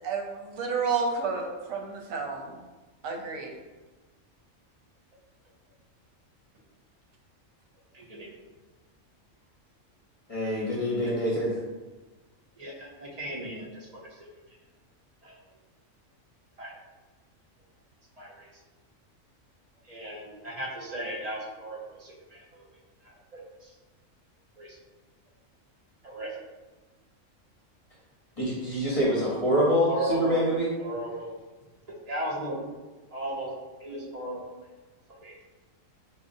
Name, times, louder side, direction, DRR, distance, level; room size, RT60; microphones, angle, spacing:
voice 1, 0.0-2.6 3.0-3.5, right 5 dB, 85° right, 2 dB, 1.0 m, -31 dB
voice 2, 7.9-8.3 11.0-11.1 12.6-14.3 15.2-15.4 16.6-16.7 18.2-18.5 19.9-22.7 23.0-23.7 24.6-24.8 26.0-26.3 29.9-30.4 30.8-31.4 32.1-32.6 33.1-34.4 35.2-35.4, right 1 dB, 40° right, -4 dB, 0.6 m, -36 dB
voice 3, 10.3-11.6 28.4-30.7, equal, 35° left, -7 dB, 0.6 m, -25 dB
5.0 x 2.0 x 2.5 m, 1.2 s
omnidirectional pair, 1.3 m